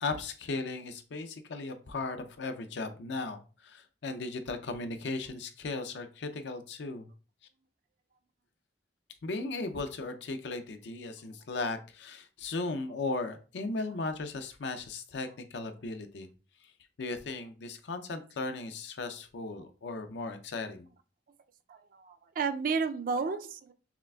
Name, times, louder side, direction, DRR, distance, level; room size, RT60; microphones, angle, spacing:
voice 1, 0.0-7.1 9.2-16.3 17.0-20.9, left 3 dB, 75° left, 8 dB, 0.5 m, -37 dB
voice 2, 21.7-23.7, right 5 dB, 50° right, 9 dB, 0.4 m, -32 dB
5.7 x 2.4 x 2.3 m, 0.35 s
head